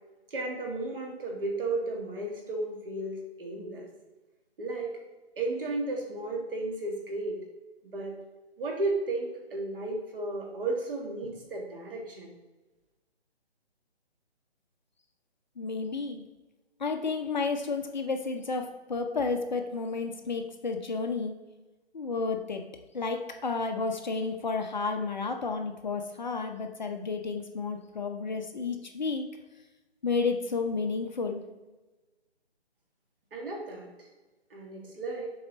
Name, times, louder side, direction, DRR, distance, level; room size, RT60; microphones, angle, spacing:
voice 1, 0.3-3.9 4.6-5.0 5.4-7.4 7.9-8.2 8.6-12.3 33.3-34.1 34.5-35.3, right 2 dB, 55° right, 0 dB, 1.8 m, -34 dB
voice 2, 15.6-16.2 16.8-21.3 21.9-22.6 22.9-29.3 30.0-31.4, left 4 dB, 45° left, 5 dB, 0.6 m, -31 dB
7.1 x 3.6 x 4.0 m, 1.2 s
hypercardioid pair, 160°, 33 cm